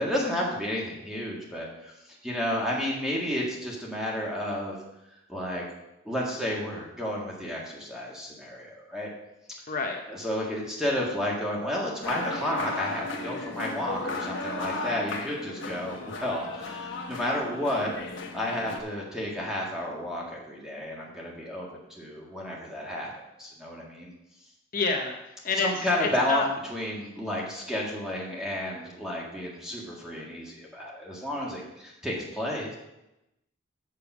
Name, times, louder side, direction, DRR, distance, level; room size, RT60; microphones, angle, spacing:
voice 1, 0.0-1.9 2.2-4.8 5.3-5.6 6.1-9.1 10.1-17.9 18.3-23.1 23.4-24.1 25.6-32.8, left 1 dB, 5° right, -3 dB, 1.8 m, -31 dB
voice 2, 9.7-10.0 24.7-25.2 25.4-26.4, left 4 dB, 45° left, 2 dB, 0.7 m, -28 dB
sound 1, 12.0-18.8, left 3 dB, 70° left, 1.2 m, -35 dB
6.8 x 6.6 x 5.9 m, 0.92 s
head